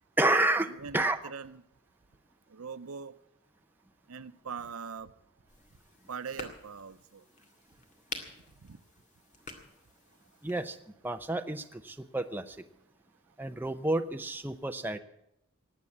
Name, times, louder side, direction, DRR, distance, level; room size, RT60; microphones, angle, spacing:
voice 1, 0.2-1.2 10.4-10.8 11.0-12.6 13.4-15.0, right 2 dB, 10° right, 7 dB, 0.6 m, -30 dB
voice 2, 0.8-1.6 2.5-3.1 4.1-5.1 6.1-7.2 8.6-8.8, right 6 dB, 85° right, 14 dB, 0.7 m, -41 dB
sound 1, 5.5-10.8, left 3 dB, 35° left, 2.0 m, -48 dB
19.0 x 8.1 x 8.6 m, 0.80 s
head